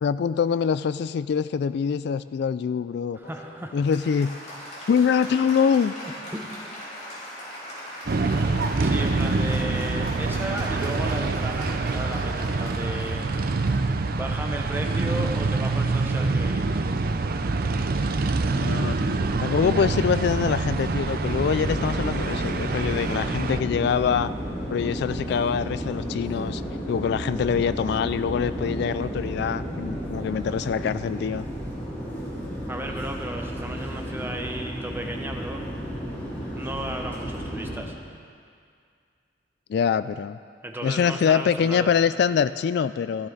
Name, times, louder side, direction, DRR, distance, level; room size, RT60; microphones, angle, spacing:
voice 1, 0.0-3.2 3.7-4.3 4.9-5.9 8.5-8.7 18.5-24.3 24.7-26.6 26.9-31.5 39.7-40.4 40.8-43.3, left 7 dB, 65° left, 14 dB, 0.3 m, -24 dB
voice 2, 3.1-3.8 6.3-6.5 8.8-13.3 14.1-16.7 32.7-35.6 36.6-37.9 40.6-41.9, right 1 dB, 10° right, 2 dB, 0.9 m, -34 dB
Applause, 3.2-15.1, equal, 40° left, 3.2 m, -40 dB
sound 1, 8.1-23.6, right 3 dB, 55° right, 0.6 m, -26 dB
sound 2, 21.2-37.8, equal, 10° left, 3.2 m, -33 dB
16.0 x 12.0 x 3.9 m, 2.2 s
head